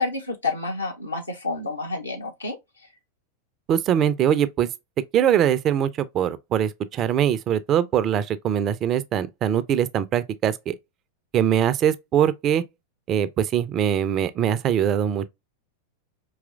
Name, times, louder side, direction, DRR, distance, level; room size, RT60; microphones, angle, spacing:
voice 1, 0.0-2.6, left 3 dB, 80° left, 1.2 m, -29 dB
voice 2, 3.7-4.7 5.1-10.8 11.3-12.6 13.1-15.3, right 9 dB, 30° right, 0.4 m, -22 dB
4.8 x 3.0 x 2.3 m
figure-of-eight pair, 90°, 0 cm